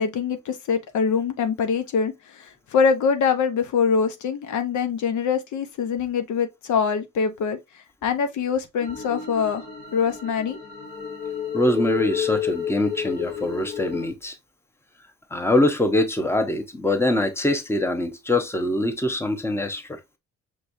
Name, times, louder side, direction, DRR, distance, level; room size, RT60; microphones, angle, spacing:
voice 1, 0.0-9.7 9.9-10.6, left 6 dB, 75° left, 1.0 m, -24 dB
sound 1, 8.8-14.1, left 8 dB, 40° left, 1.7 m, -31 dB
voice 2, 11.5-14.3 15.3-20.0, left 1 dB, 10° left, 1.0 m, -23 dB
6.1 x 3.1 x 2.7 m
cardioid pair, 90°, 30 cm